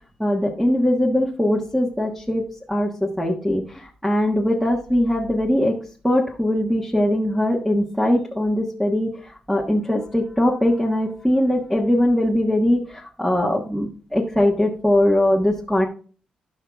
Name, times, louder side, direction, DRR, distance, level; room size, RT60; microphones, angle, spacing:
voice 1, 0.2-5.8 6.0-9.1 9.5-15.9, left 1 dB, ahead, -1 dB, 1.3 m, -21 dB
16.0 x 5.5 x 2.4 m, 0.40 s
cardioid pair, 95°, 2 cm